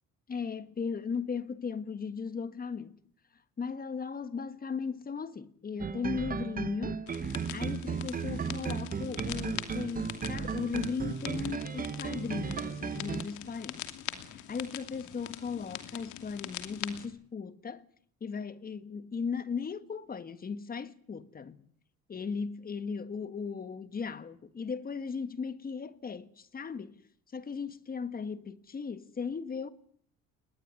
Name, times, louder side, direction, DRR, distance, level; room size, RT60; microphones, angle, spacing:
voice 1, 0.3-3.0 3.6-7.0 7.5-13.9 14.2-17.8 18.2-21.6 22.1-27.0 27.3-29.7, left 5 dB, 30° left, 1.7 m, -37 dB
sound 1, 5.8-13.2, right 6 dB, 30° right, 1.1 m, -35 dB
sound 2, 7.1-17.1, left 12 dB, 80° left, 2.8 m, -43 dB
20.5 x 19.5 x 9.7 m
cardioid pair, 115°, 29 cm